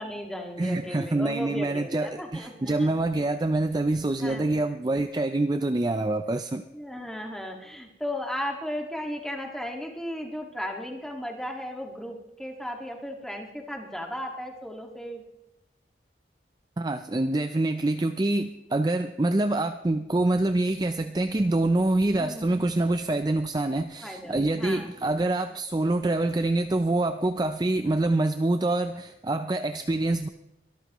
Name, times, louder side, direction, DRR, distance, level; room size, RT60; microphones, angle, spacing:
voice 1, 0.0-2.9 4.2-4.5 6.7-15.2 22.2-22.5 24.0-24.9, equal, 5° left, 1 dB, 1.8 m, -35 dB
voice 2, 0.6-6.6 16.8-30.3, right 2 dB, 20° right, 8 dB, 0.4 m, -26 dB
23.0 x 13.5 x 3.0 m, 0.94 s
head